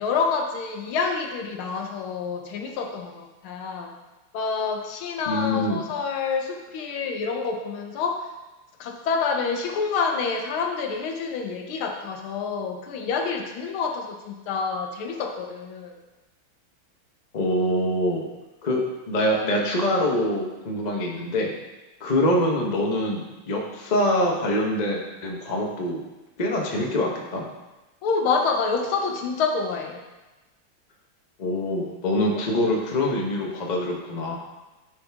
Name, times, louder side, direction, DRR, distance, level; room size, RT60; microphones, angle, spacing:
voice 1, 0.0-3.9 4.3-8.3 8.8-16.0 28.0-30.0, left 5 dB, 75° left, 3 dB, 1.6 m, -27 dB
voice 2, 5.3-5.8 17.3-18.3 18.6-21.5 22.0-26.0 26.4-27.4 31.4-34.3, left 1 dB, 45° left, 0 dB, 0.5 m, -24 dB
9.7 x 4.9 x 3.5 m, 1.1 s
omnidirectional pair, 2.3 m